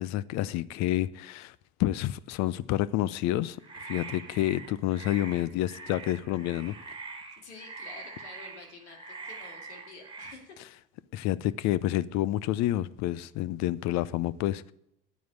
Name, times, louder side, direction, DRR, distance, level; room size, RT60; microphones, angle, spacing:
voice 1, 0.0-1.5 1.8-3.6 3.8-6.7 11.1-14.7, left 14 dB, 55° left, 0.7 m, -29 dB
sound 1, 3.6-10.3, right 4 dB, 15° right, 2.1 m, -44 dB
voice 2, 7.4-10.6, left 3 dB, 85° left, 2.5 m, -49 dB
9.4 x 9.3 x 8.0 m
hypercardioid pair, 65°, 33 cm